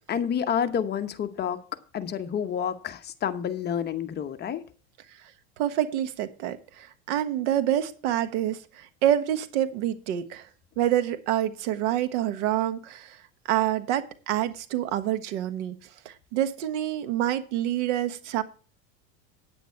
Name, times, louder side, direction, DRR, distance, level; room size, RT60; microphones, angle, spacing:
voice 1, 0.1-1.6 1.9-4.6, left 8 dB, 30° left, 0.9 m, -29 dB
voice 2, 5.6-10.5 10.8-13.2 13.5-15.8 16.0-18.4, right 12 dB, 85° right, 1.4 m, -27 dB
9.3 x 9.0 x 4.5 m
supercardioid pair, 135°, 35 cm